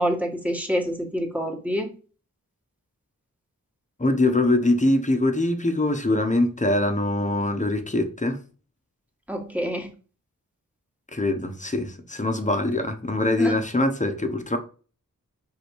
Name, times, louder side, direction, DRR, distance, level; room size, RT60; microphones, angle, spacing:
voice 1, 0.0-1.9 9.3-9.9 13.4-13.5, equal, 5° right, 1.8 m, -26 dB
voice 2, 4.0-8.4 11.1-14.6, left 2 dB, 20° left, 1.2 m, -23 dB
5.1 x 3.9 x 4.7 m
wide cardioid pair, 55°, 33 cm